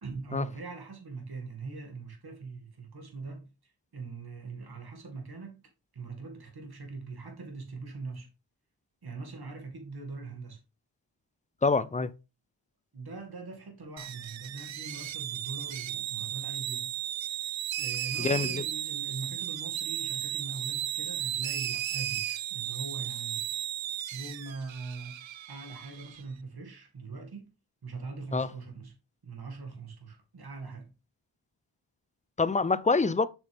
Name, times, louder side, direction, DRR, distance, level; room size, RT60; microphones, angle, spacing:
voice 1, 0.0-5.6 5.9-8.3 9.0-10.6 12.9-16.9 17.8-23.4 24.1-27.5 27.8-29.0 29.2-30.9, right 4 dB, 55° right, 2.1 m, -42 dB
voice 2, 11.6-12.1 18.2-18.6 28.3-28.5 32.4-33.3, left 4 dB, 15° left, 0.4 m, -25 dB
sound 1, 14.0-26.2, right 11 dB, 80° right, 0.6 m, -35 dB
7.1 x 5.9 x 3.4 m
wide cardioid pair, 85°, 45 cm